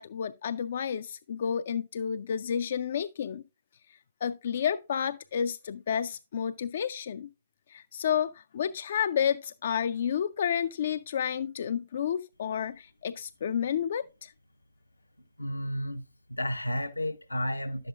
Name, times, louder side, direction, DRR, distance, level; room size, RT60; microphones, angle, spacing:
voice 1, 0.0-3.4 4.2-7.3 7.7-14.3, left 8 dB, 50° left, 0.3 m, -30 dB
voice 2, 15.4-16.0 16.3-17.9, equal, 85° left, 0.7 m, -32 dB
11.0 x 7.7 x 2.4 m
figure-of-eight pair, 125°, 0 cm